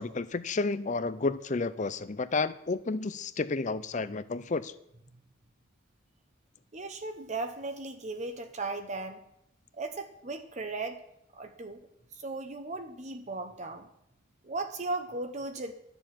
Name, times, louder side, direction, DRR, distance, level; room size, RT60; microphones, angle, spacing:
voice 1, 0.0-4.7, left 3 dB, 40° left, 15 dB, 0.5 m, -31 dB
voice 2, 6.7-9.2 9.8-11.0 11.4-11.8 12.2-13.9 14.4-15.7, right 3 dB, 35° right, 7 dB, 0.9 m, -36 dB
12.5 x 7.0 x 7.6 m, 0.79 s
head